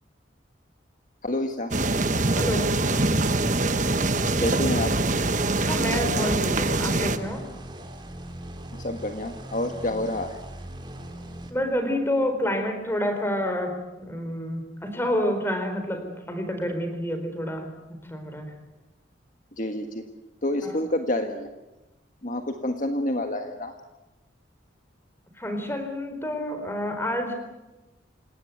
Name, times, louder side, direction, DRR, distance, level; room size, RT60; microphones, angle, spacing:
voice 1, 1.2-1.7 4.4-4.9 8.8-10.4 19.6-20.0 20.4-21.5 22.2-23.7, left 1 dB, 45° left, 5 dB, 1.6 m, -28 dB
sound 1, 1.7-7.2, right 2 dB, 40° right, 1.3 m, -24 dB
voice 2, 2.3-2.7 5.7-7.4 11.5-18.5 20.6-20.7 25.4-27.3, equal, 10° left, 6 dB, 4.1 m, -28 dB
sound 2, 6.0-11.5, right 1 dB, 25° right, 3.0 m, -40 dB
27.5 x 18.0 x 9.3 m, 1.1 s
head